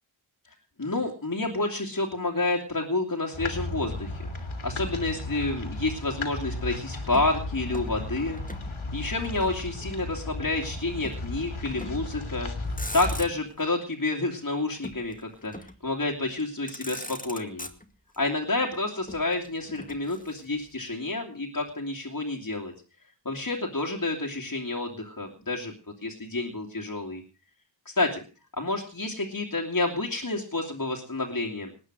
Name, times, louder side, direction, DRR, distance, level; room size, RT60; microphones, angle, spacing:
voice 1, 0.8-4.3 4.6-8.4 8.9-12.5 12.9-15.5 15.8-17.7 18.2-22.7 23.2-25.7 26.0-27.2 27.8-28.2 28.6-31.7, left 2 dB, 45° left, 0 dB, 2.9 m, -29 dB
sound 1, 3.3-13.3, left 2 dB, 85° left, 3.1 m, -35 dB
Motor vehicle (road), 7.1-8.7 9.0-10.1 11.0-11.3 11.7-12.1 12.6-13.6 14.8-15.9 16.4-16.5 16.7-18.2 19.1-20.7, left 1 dB, 15° left, 2.1 m, -42 dB
19.5 x 9.7 x 6.2 m, 0.37 s
wide cardioid pair, 50°, 47 cm